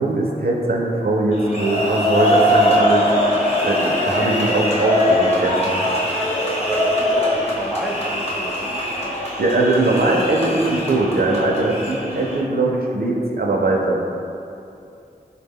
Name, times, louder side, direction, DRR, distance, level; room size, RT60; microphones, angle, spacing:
voice 1, 0.0-3.0 3.6-6.0 9.4-14.0, right 2 dB, 65° right, -1 dB, 0.4 m, -20 dB
sound 1, 1.3-12.4, left 1 dB, 35° left, 0.8 m, -21 dB
voice 2, 6.6-8.6, equal, ahead, -1 dB, 0.4 m, -29 dB
4.0 x 2.1 x 3.5 m, 2.6 s
wide cardioid pair, 60°, 17 cm